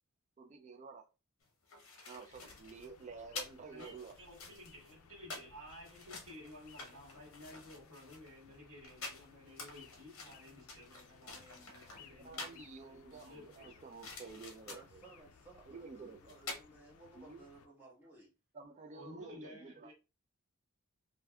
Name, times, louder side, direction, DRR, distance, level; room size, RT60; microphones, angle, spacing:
voice 1, 0.4-1.1 2.1-4.1 12.2-15.0 15.7-16.3 17.1-17.4 18.5-19.9, right 4 dB, 35° right, 0.4 m, -51 dB
sound 1, 1.4-12.7 13.1-15.0 16.0-16.1 16.3-16.6, left 3 dB, 65° left, 0.9 m, -49 dB
sound 2, 2.3-17.7, left 6 dB, 90° left, 0.4 m, -62 dB
voice 2, 3.7-13.8 18.9-19.9, left 1 dB, 75° right, 1.3 m, -54 dB
voice 3, 14.6-18.3, right 2 dB, 10° right, 1.2 m, -58 dB
3.4 x 2.5 x 2.2 m
head